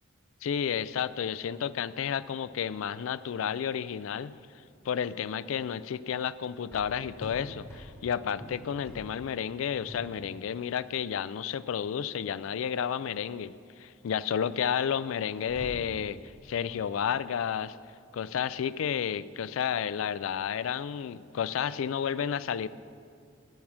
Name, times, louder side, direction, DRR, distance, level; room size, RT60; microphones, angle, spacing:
voice 1, 0.4-4.4 4.8-13.5 13.8-17.8 18.1-22.7, left 8 dB, 85° left, 16 dB, 0.3 m, -31 dB
sound 1, 4.7-22.0, equal, 15° left, 2.5 m, -50 dB
13.5 x 7.1 x 6.1 m, 2.5 s
head